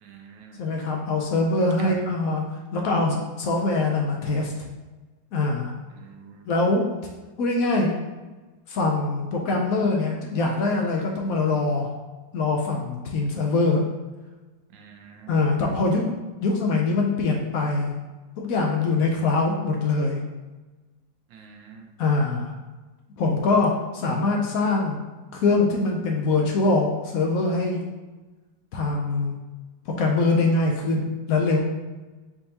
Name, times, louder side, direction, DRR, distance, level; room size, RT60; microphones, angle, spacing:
voice 1, 0.0-0.6 1.8-1.9 6.0-6.5 14.7-15.3 21.3-21.9, right 6 dB, 80° right, 1 dB, 1.3 m, -45 dB
voice 2, 0.6-2.4 2.7-4.5 5.3-5.7 6.5-6.9 7.4-7.9 8.7-11.9 12.3-13.8 15.3-16.0 16.4-17.9 18.4-20.2 22.0-22.5 23.2-25.0 25.3-27.8 28.7-29.4 29.9-31.6, left 3 dB, 65° left, 1 dB, 0.9 m, -23 dB
4.5 x 3.7 x 2.8 m, 1.2 s
omnidirectional pair, 2.0 m